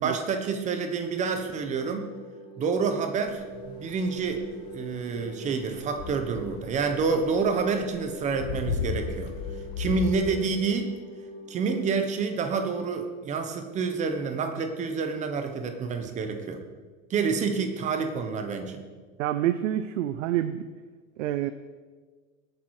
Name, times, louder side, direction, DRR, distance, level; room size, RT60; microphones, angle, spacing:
voice 1, 0.0-2.1 2.6-4.4 4.7-9.3 9.8-11.0 11.5-16.6 17.1-18.8, right 5 dB, 20° right, 6 dB, 1.1 m, -28 dB
sound 1, 1.6-11.8, left 2 dB, 15° left, 3.2 m, -43 dB
sound 2, 3.3-10.1, left 6 dB, 60° left, 1.8 m, -36 dB
voice 2, 19.2-20.7 21.2-21.5, right 12 dB, 85° right, 11 dB, 0.7 m, -27 dB
20.5 x 8.7 x 4.8 m, 1.4 s
supercardioid pair, 170°, 37 cm